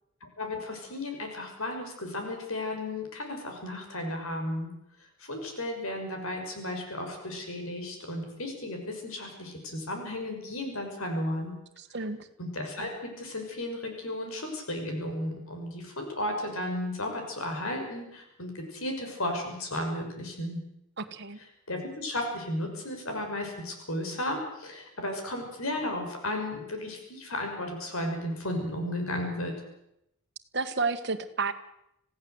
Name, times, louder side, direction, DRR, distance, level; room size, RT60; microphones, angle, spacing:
voice 1, 0.2-4.7 5.2-11.5 12.4-20.6 21.7-29.6, left 1 dB, 80° left, 4 dB, 6.1 m, -34 dB
voice 2, 21.0-21.4 30.5-31.5, right 4 dB, 55° right, 6 dB, 1.7 m, -30 dB
26.5 x 16.0 x 8.0 m, 0.81 s
head